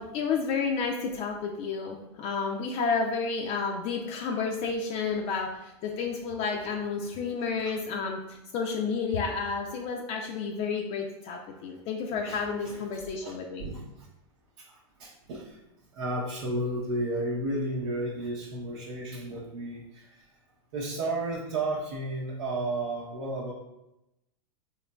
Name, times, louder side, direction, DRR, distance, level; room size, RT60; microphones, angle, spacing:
voice 1, 0.0-13.6, left 5 dB, 45° left, 1 dB, 0.4 m, -31 dB
voice 2, 12.3-14.1 14.6-14.7 15.0-15.6 15.9-20.2 20.7-23.5, right 1 dB, 75° right, -6 dB, 0.8 m, -33 dB
3.8 x 3.0 x 2.2 m, 0.90 s
hypercardioid pair, 110°, 15 cm